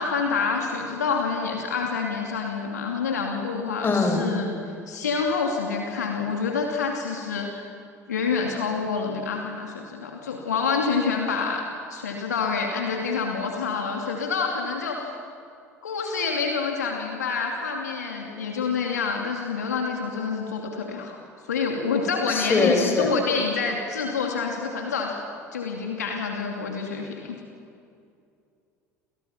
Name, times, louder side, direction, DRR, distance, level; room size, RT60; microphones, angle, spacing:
voice 1, 0.0-4.5 4.9-7.7 8.1-15.1 15.8-21.2 21.4-25.2 25.5-27.4, left 5 dB, 75° left, 2 dB, 2.6 m, -27 dB
voice 2, 3.8-4.4 22.3-23.1, left 3 dB, 25° left, 3 dB, 6.4 m, -22 dB
30.0 x 29.0 x 5.8 m, 2.4 s
figure-of-eight pair, 65°, 9 cm